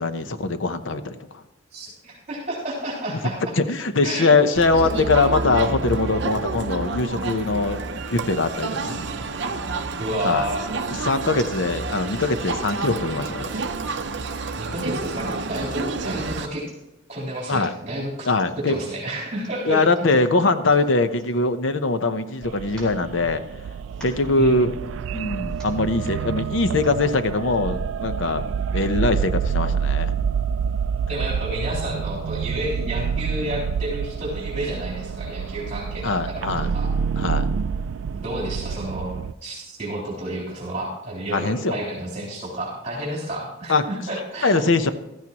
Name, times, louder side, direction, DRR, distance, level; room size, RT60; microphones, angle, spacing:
voice 1, 0.0-1.4 3.6-7.8 8.1-9.0 10.2-10.5 11.0-13.6 17.5-17.7 18.3-18.8 19.6-23.4 24.0-24.7 25.1-28.4 28.7-30.1 36.0-36.7 37.2-37.5 41.3-41.8 43.7-43.8 44.4-44.9, left 3 dB, 85° left, 10 dB, 0.8 m, -22 dB
voice 2, 1.7-3.5 4.0-4.3 4.8-4.9 10.0-10.6 14.6-16.6 17.1-18.3 18.6-19.8 24.4-24.8 31.1-36.9 38.1-44.6, right 1 dB, 35° right, -5 dB, 3.6 m, -30 dB
Crowd, 4.5-16.5, right 3 dB, 65° right, 0.7 m, -29 dB
sound 1, 10.9-11.5 12.2-13.0 13.6-13.7 14.0-14.7 15.3-16.0 16.4-16.5 16.7-17.0 17.4-17.8 18.4-18.5 19.3-21.8 22.1-22.2 22.6-23.6 23.9-24.3 25.1-25.2 25.4-25.8 26.6-27.0 27.6-27.7, right 2 dB, 5° left, 4.3 m, -48 dB
sound 2, 22.4-39.3, right 6 dB, 90° right, 0.3 m, -27 dB
15.5 x 13.5 x 3.0 m, 0.95 s
head